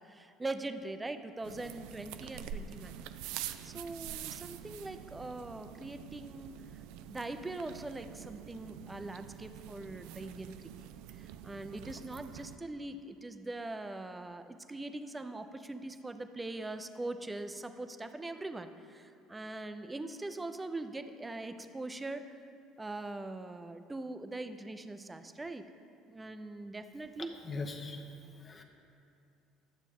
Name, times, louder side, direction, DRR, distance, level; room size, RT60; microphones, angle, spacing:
voice 1, 0.0-2.9 3.6-6.6 7.1-22.4 22.8-25.6 26.1-27.4, right 2 dB, 15° right, 9 dB, 0.6 m, -42 dB
sound 1, 1.4-12.6, right 10 dB, 70° right, 0.3 m, -46 dB
voice 2, 27.4-28.0 28.4-28.6, left 3 dB, 35° left, 3 dB, 0.9 m, -39 dB
11.5 x 7.2 x 3.6 m, 2.6 s
hypercardioid pair, 65°, 0 cm